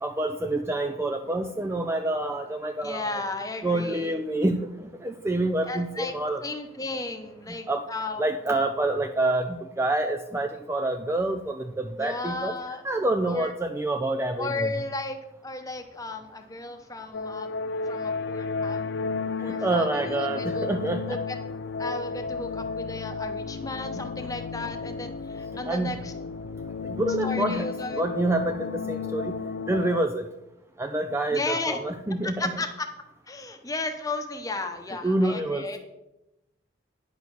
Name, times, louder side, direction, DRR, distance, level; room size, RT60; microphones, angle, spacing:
voice 1, 0.0-3.2 3.6-4.7 5.0-6.4 7.7-7.8 8.2-12.5 12.8-14.7 19.5-21.2 25.7-26.0 26.8-29.3 29.7-30.3 30.8-32.5 34.9-35.7, right 2 dB, 15° right, 6 dB, 0.3 m, -27 dB
voice 2, 2.8-4.1 5.6-6.1 6.4-8.2 12.0-12.8 13.2-13.5 14.4-15.2 15.4-17.6 17.9-18.9 19.4-20.7 21.1-21.4 21.8-26.1 27.2-28.0 31.3-31.8 32.2-32.9 33.3-35.8, left 3 dB, 15° left, 5 dB, 0.9 m, -34 dB
sound 1, 17.1-30.0, left 4 dB, 60° left, 0.4 m, -32 dB
10.0 x 4.6 x 6.8 m, 0.94 s
head